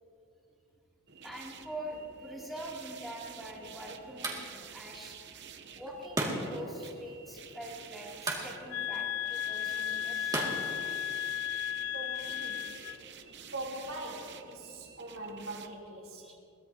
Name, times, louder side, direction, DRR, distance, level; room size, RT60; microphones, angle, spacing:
sound 1, 1.1-15.7, right 7 dB, 55° right, 0.8 m, -50 dB
voice 1, 1.2-4.4 4.7-5.2 5.4-10.4 13.1-13.4 16.2-16.4, right 1 dB, ahead, -5 dB, 2.9 m, -44 dB
sound 2, 3.4-11.5, right 1 dB, 20° right, 2.3 m, -40 dB
sound 3, 8.7-13.0, left 11 dB, 65° left, 0.3 m, -35 dB
voice 2, 11.9-12.7 13.5-16.3, right 2 dB, 75° right, -4 dB, 3.3 m, -42 dB
22.5 x 18.0 x 2.9 m, 2.6 s
head